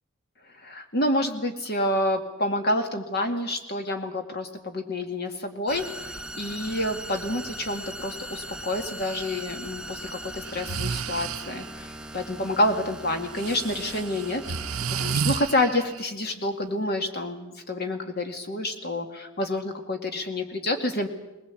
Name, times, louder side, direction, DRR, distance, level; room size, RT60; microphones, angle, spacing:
voice 1, 0.6-11.9 12.1-14.4 15.0-21.1, left 1 dB, 45° left, 5 dB, 2.2 m, -28 dB
sound 1, 5.7-15.2, right 1 dB, 5° right, 0.8 m, -40 dB
Breathing, 9.0-9.3 10.4-11.7 13.4-16.1, right 6 dB, 70° right, 0.8 m, -31 dB
20.5 x 20.5 x 8.4 m, 1.0 s
head